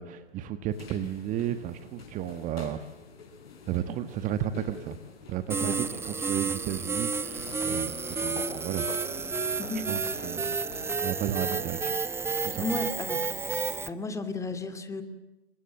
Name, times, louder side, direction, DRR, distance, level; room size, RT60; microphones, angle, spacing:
voice 1, 0.0-2.9 3.6-5.0 5.3-8.9 9.7-10.6 11.0-12.0 12.4-12.7, right 11 dB, 25° right, 10 dB, 1.4 m, -33 dB
sound 1, 0.7-11.8, left 4 dB, 60° left, 7.2 m, -47 dB
sound 2, 5.5-13.9, right 4 dB, 5° right, 1.1 m, -31 dB
voice 2, 12.6-13.2 13.9-15.0, left 3 dB, 10° left, 8 dB, 2.6 m, -33 dB
28.5 x 24.0 x 7.6 m, 1.0 s
figure-of-eight pair, 125°, 33 cm